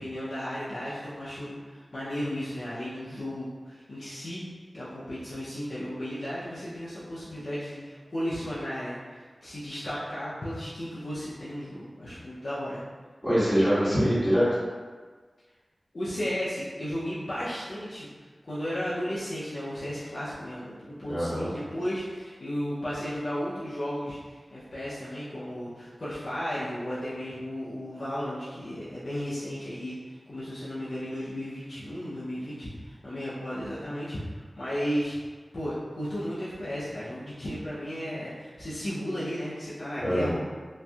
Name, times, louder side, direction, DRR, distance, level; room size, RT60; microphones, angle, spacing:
voice 1, 0.0-4.4 4.7-12.8 15.9-18.1 18.4-35.2 35.5-40.4, equal, 65° left, -11 dB, 0.6 m, -34 dB
voice 2, 13.2-14.5 21.1-21.5 40.0-40.4, equal, 15° left, -15 dB, 1.5 m, -24 dB
3.1 x 2.6 x 2.3 m, 1.4 s
wide cardioid pair, 50°, 0 cm